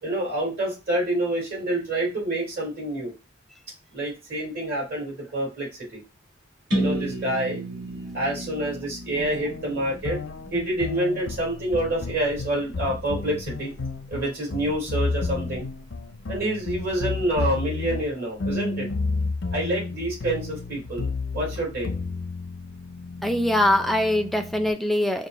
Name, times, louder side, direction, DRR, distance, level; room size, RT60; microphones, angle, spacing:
voice 1, 0.0-3.1 3.9-6.0 6.7-7.6 8.1-10.2 10.5-13.7 14.1-15.7 16.3-18.9 19.5-21.1 21.3-21.9, right 1 dB, 55° right, -3 dB, 2.7 m, -27 dB
sound 1, 6.7-10.6, right 1 dB, 75° right, 2.6 m, -31 dB
sound 2, 9.2-24.7, left 3 dB, 75° left, 0.6 m, -32 dB
voice 2, 23.2-25.3, left 1 dB, ahead, 5 dB, 0.4 m, -22 dB
5.2 x 2.5 x 3.0 m, 0.28 s
head